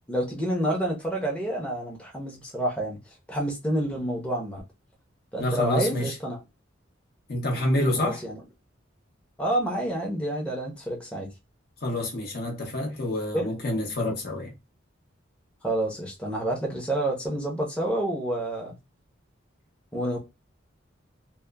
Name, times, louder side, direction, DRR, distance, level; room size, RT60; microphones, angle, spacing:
voice 1, 0.1-3.0 3.3-4.6 5.3-6.4 8.0-8.4 9.4-11.3 13.3-13.5 15.6-18.8 19.9-20.2, right 1 dB, 5° left, 0.7 m, -28 dB
voice 2, 5.4-6.1 7.3-8.2 11.8-14.5, left 1 dB, 55° left, 0.7 m, -27 dB
2.8 x 2.1 x 2.2 m
head